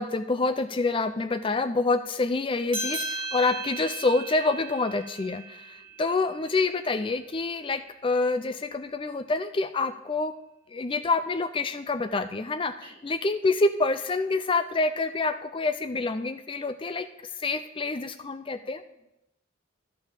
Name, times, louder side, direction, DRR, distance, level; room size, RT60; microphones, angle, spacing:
voice 1, 0.0-10.4 10.7-18.8, left 3 dB, 25° left, 11 dB, 0.4 m, -27 dB
sound 1, 2.7-7.6, right 2 dB, 25° right, 3.1 m, -37 dB
voice 2, 12.5-13.0 18.0-19.0, right 3 dB, 55° right, -2 dB, 3.1 m, -58 dB
12.0 x 5.6 x 7.4 m, 0.87 s
head